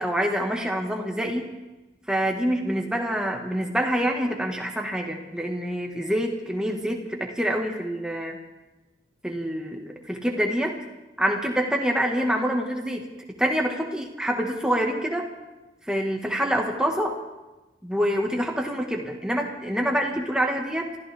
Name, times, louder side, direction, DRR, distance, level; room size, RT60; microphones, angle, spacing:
voice 1, 0.0-1.5 2.1-8.4 9.2-10.8 11.2-13.1 13.4-15.3 15.9-17.2 17.8-21.0, equal, 5° right, 1 dB, 1.6 m, -26 dB
27.0 x 14.5 x 3.5 m, 1.1 s
head